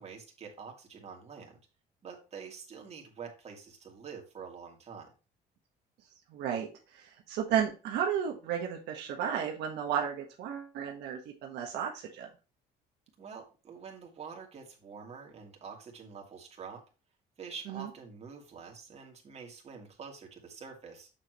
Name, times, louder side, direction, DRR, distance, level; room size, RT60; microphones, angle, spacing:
voice 1, 0.0-1.6 2.0-5.1 13.2-16.8 17.4-21.1, right 6 dB, 40° right, 1 dB, 2.7 m, -46 dB
voice 2, 6.3-12.3 17.7-17.9, right 8 dB, 80° right, 1 dB, 1.5 m, -33 dB
7.5 x 6.5 x 3.1 m, 0.32 s
cardioid pair, 110°, 17 cm